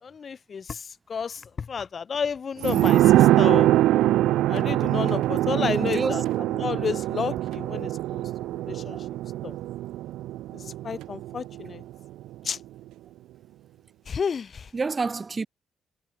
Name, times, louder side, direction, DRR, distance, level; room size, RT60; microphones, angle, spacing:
voice 1, 0.0-3.7 4.5-6.2 6.5-8.2 8.7-9.0 9.4-9.5 10.5-11.8 12.4-12.6 14.1-14.7, left 6 dB, 50° left, 1.4 m, -31 dB
sound 1, 2.6-11.9 12.2-12.3, right 15 dB, 85° right, 1.1 m, -23 dB
voice 2, 5.6-6.2 8.9-9.1 14.7-15.5, right 4 dB, 35° right, 0.7 m, -28 dB
supercardioid pair, 65°, 0 cm